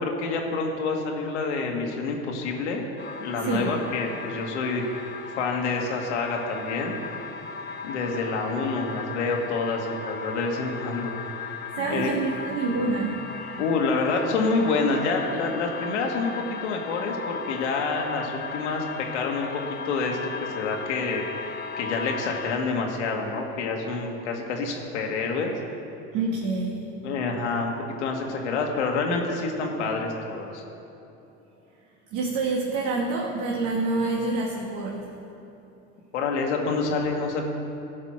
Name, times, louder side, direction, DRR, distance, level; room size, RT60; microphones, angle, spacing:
voice 1, 0.0-2.9 3.2-5.1 5.4-7.0 7.8-11.4 11.9-12.1 13.6-21.5 21.8-25.5 27.0-30.6 36.1-37.4, left 4 dB, 85° left, 1 dB, 1.7 m, -27 dB
sound 1, 3.0-22.6, left 5 dB, 30° left, 1.2 m, -37 dB
voice 2, 3.4-3.7 11.7-13.6 26.1-27.0 32.1-35.1, right 3 dB, 60° right, -2 dB, 1.6 m, -27 dB
15.0 x 5.1 x 6.2 m, 2.9 s
hypercardioid pair, 85°, 34 cm